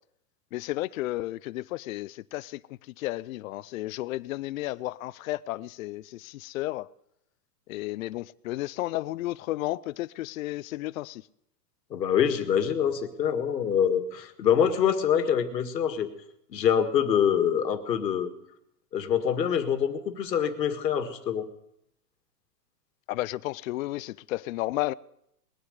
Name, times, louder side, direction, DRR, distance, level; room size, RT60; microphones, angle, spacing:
voice 1, 0.5-6.9 7.7-11.2 23.1-24.9, left 17 dB, 55° left, 0.5 m, -33 dB
voice 2, 11.9-16.1 16.5-18.3 18.9-21.5, left 8 dB, 90° left, 1.9 m, -25 dB
20.0 x 9.7 x 6.5 m
hypercardioid pair, 140°, 49 cm